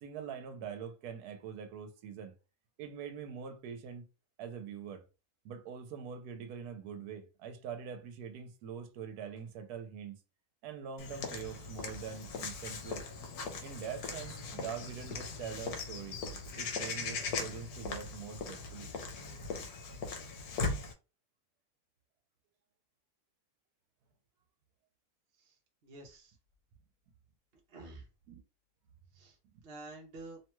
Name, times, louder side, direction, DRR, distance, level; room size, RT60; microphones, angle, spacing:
voice 1, 0.0-2.3 2.8-4.1 4.4-5.0 5.4-10.2 10.6-13.1 13.6-16.2 16.6-18.9 28.3-28.4, right 7 dB, 80° right, 1.1 m, -44 dB
Walk footsteps / Bird vocalization bird call bird song, 11.0-20.9, left 4 dB, 80° left, 1.2 m, -39 dB
voice 2, 25.3-26.4 27.7-28.1 29.1-29.4 29.6-30.4, right 2 dB, 50° right, 0.7 m, -49 dB
2.9 x 2.2 x 3.0 m
omnidirectional pair, 1.6 m